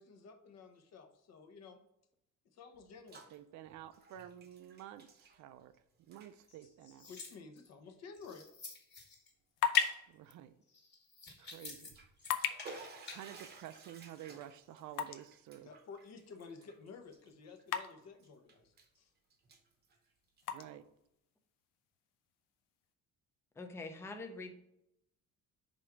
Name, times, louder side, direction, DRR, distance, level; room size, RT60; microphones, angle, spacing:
voice 1, 0.0-1.8 2.5-3.3 7.1-8.4 15.6-19.1, left 5 dB, 55° left, 5 dB, 1.0 m, -53 dB
Bathtub (filling or washing), 2.7-3.4 3.7-5.8 6.0-6.3 7.1-7.2 7.9-8.0 8.4-8.5 11.7-17.8 18.2-19.0 19.3-20.6, right 4 dB, 30° right, 0.8 m, -56 dB
voice 2, 3.3-5.7 6.1-7.1 10.1-10.6 11.4-12.0 13.1-15.7 20.5-20.9, right 11 dB, 65° right, 13 dB, 0.5 m, -51 dB
sound 1, 6.4-7.7 8.1-9.3 9.7-10.0 10.7-11.9 12.2-13.2, left 3 dB, 35° left, 1.5 m, -49 dB
sound 2, 9.1-22.9, left 9 dB, 90° left, 0.7 m, -42 dB
voice 3, 23.6-24.5, left 2 dB, 10° left, 5 dB, 0.5 m, -44 dB
5.1 x 3.6 x 5.8 m, 0.81 s
cardioid pair, 175°, 32 cm